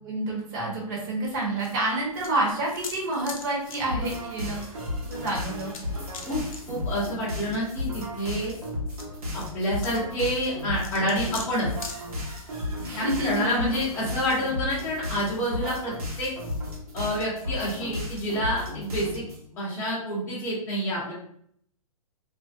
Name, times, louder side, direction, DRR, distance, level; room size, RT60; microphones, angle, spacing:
voice 1, 0.0-5.7 12.8-13.6, right 1 dB, 30° right, -3 dB, 0.9 m, -29 dB
sound 1, 1.2-18.4, left 5 dB, 65° left, 0.5 m, -47 dB
sound 2, 3.9-19.4, left 1 dB, 85° right, 1.0 m, -34 dB
voice 2, 6.7-8.5 9.3-11.7 12.9-16.3 16.9-19.2 19.5-21.1, equal, 10° left, -9 dB, 0.8 m, -28 dB
2.5 x 2.1 x 2.4 m, 0.66 s
hypercardioid pair, 155°, 19 cm